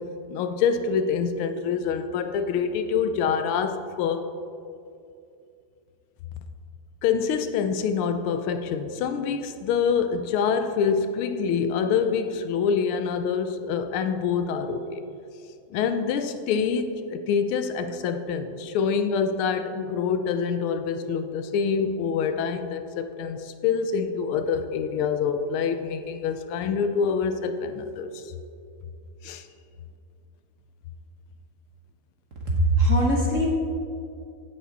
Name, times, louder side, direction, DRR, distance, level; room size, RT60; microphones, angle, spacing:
voice 1, 0.3-4.3 7.0-15.0 15.7-28.2 29.2-29.4, left 6 dB, 80° left, 9 dB, 1.5 m, -26 dB
voice 2, 32.4-33.5, right 1 dB, 50° right, -2 dB, 1.1 m, -21 dB
15.0 x 5.0 x 4.0 m, 2.5 s
omnidirectional pair, 2.4 m